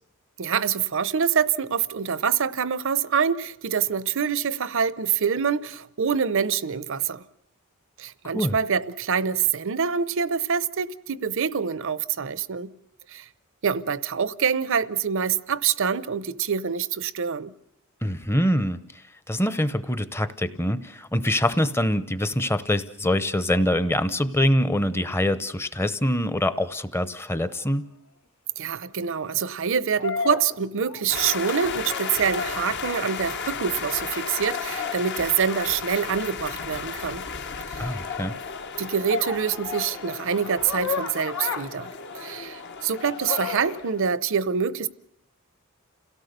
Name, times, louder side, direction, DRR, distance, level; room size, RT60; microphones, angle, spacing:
voice 1, 0.4-7.2 8.0-12.7 13.1-13.2 13.6-17.5 28.6-37.2 37.7-37.8 38.8-44.9, right 7 dB, 60° right, 0.7 m, -26 dB
voice 2, 18.0-18.8 19.3-27.8 37.8-38.4, left 1 dB, 10° left, 0.7 m, -24 dB
sound 1, 27.6-27.7 30.0-31.3 31.7-32.7 35.4-35.7 39.1-42.6 43.3-43.8, left 4 dB, 75° left, 1.4 m, -33 dB
sound 2, 31.1-44.0, left 6 dB, 55° left, 1.0 m, -34 dB
28.5 x 17.0 x 6.7 m
head